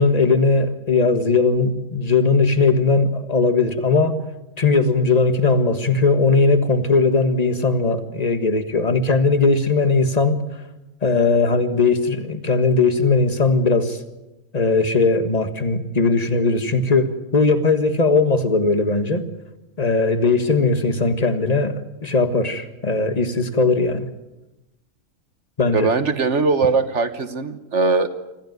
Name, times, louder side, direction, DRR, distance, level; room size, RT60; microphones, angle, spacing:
voice 1, 0.0-4.2 4.6-10.4 11.0-14.0 14.5-19.2 19.8-24.1 25.6-25.9, left 3 dB, 30° left, 9 dB, 1.6 m, -19 dB
voice 2, 25.7-28.1, right 4 dB, 55° right, 10 dB, 1.5 m, -20 dB
26.0 x 14.5 x 9.4 m, 1.0 s
omnidirectional pair, 1.5 m